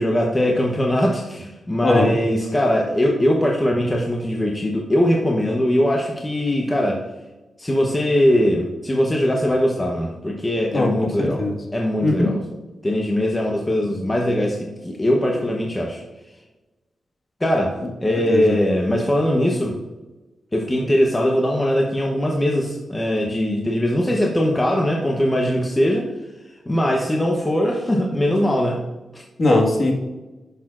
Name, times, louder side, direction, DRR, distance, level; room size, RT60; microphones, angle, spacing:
voice 1, 0.0-7.0 7.6-11.4 11.7-12.4 12.8-16.0 17.4-19.8 20.5-26.1 26.7-28.8 29.1-29.2, equal, 20° left, 0 dB, 0.9 m, -21 dB
voice 2, 1.8-2.1 10.7-10.9 11.4-11.6 12.0-12.3 18.3-18.5 29.4-29.9, left 2 dB, 45° left, -1 dB, 1.7 m, -18 dB
10.0 x 6.8 x 2.5 m, 1.1 s
wide cardioid pair, 95°, 0 cm